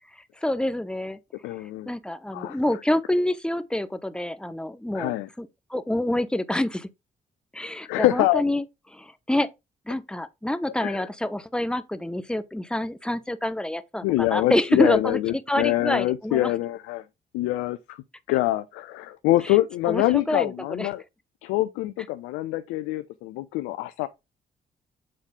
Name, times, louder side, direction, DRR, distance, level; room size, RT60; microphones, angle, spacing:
voice 1, 0.4-1.2 1.9-6.9 7.5-8.6 8.9-9.5 9.9-15.2 15.5-16.5 19.5-19.6 19.9-20.9, left 1 dB, 5° left, 0.8 m, -27 dB
voice 2, 1.4-1.9 2.3-2.6 4.9-5.3 7.8-8.4 10.8-11.1 14.0-17.0 17.3-18.0 18.3-21.0 21.4-24.1, left 16 dB, 80° left, 0.4 m, -25 dB
7.5 x 4.0 x 3.6 m
hypercardioid pair, 45°, 20 cm